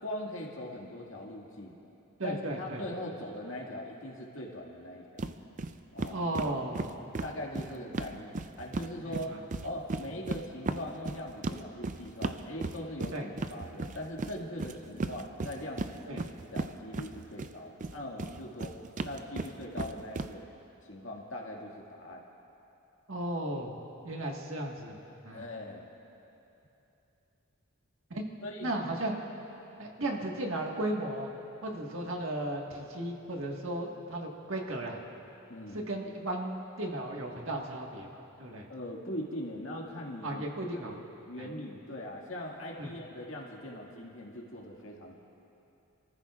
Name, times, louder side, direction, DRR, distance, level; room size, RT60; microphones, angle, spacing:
voice 1, 0.0-1.8 2.2-5.3 5.9-6.2 7.2-9.3 9.6-18.7 19.0-20.5 20.8-22.2 25.3-25.9 28.4-28.7 35.5-35.8 38.7-40.5 40.8-41.0 41.3-45.1, left 1 dB, 70° left, -1 dB, 2.0 m, -41 dB
voice 2, 2.2-2.8 6.1-7.0 7.6-7.7 9.0-9.4 13.1-13.3 16.1-16.2 23.1-25.0 25.2-25.4 28.1-28.2 28.6-29.2 29.8-31.3 31.6-35.0 35.7-38.1 38.4-38.7 40.2-41.0 41.4-41.5 42.8-42.9, right 1 dB, 70° right, 0 dB, 1.6 m, -35 dB
sound 1, 5.2-5.3 5.6-5.7 6.0-8.9 9.1-17.5 17.8-20.3, right 3 dB, 40° right, 0.4 m, -35 dB
28.0 x 14.5 x 2.5 m, 2.9 s
head